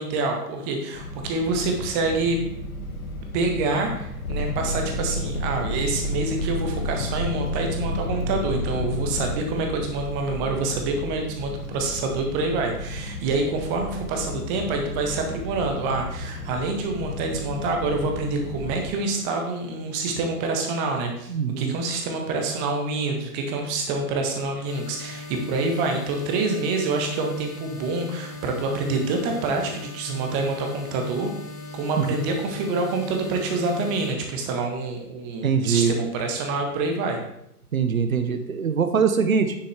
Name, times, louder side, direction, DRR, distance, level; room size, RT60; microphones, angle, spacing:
voice 1, 0.0-2.4 3.3-31.3 31.7-37.2, right 3 dB, 20° right, 3 dB, 1.4 m, -27 dB
sound 1, 0.9-18.9, left 1 dB, 60° left, 1.8 m, -35 dB
sound 2, 4.2-9.3 10.0-10.7, left 1 dB, 45° left, 0.8 m, -29 dB
voice 2, 21.3-21.7 32.0-32.2 35.4-35.9 37.7-39.5, right 6 dB, 60° right, 8 dB, 0.9 m, -22 dB
sound 3, 24.6-34.1, left 3 dB, 5° left, 0.9 m, -39 dB
9.7 x 6.9 x 3.4 m, 0.78 s
figure-of-eight pair, 120°, 47 cm